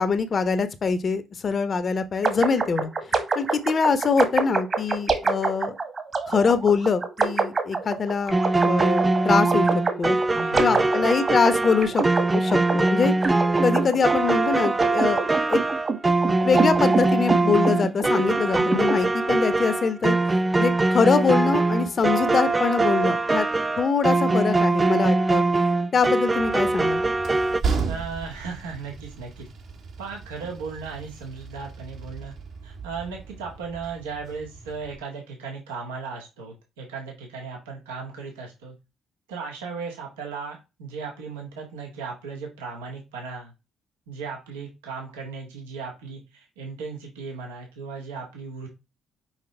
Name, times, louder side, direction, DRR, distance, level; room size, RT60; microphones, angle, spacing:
voice 1, 0.0-2.9 3.3-5.7 6.3-9.7 10.0-10.2 10.6-12.0 12.3-13.1 13.6-15.2 15.5-15.6 16.4-20.2 20.6-23.5 23.8-25.4 25.9-27.0, left 5 dB, 45° left, 1.0 m, -23 dB
sound 1, 2.2-18.9, right 4 dB, 40° right, 1.7 m, -27 dB
sound 2, 8.3-27.6, right 2 dB, 25° right, 0.5 m, -22 dB
voice 2, 10.3-10.8 27.8-29.5 30.0-32.3 32.6-38.7 39.3-43.5 44.1-48.7, right 5 dB, 80° right, 1.7 m, -36 dB
Train, 26.4-35.0, right 5 dB, 60° right, 1.7 m, -35 dB
5.9 x 5.2 x 3.3 m
figure-of-eight pair, 45°, 0 cm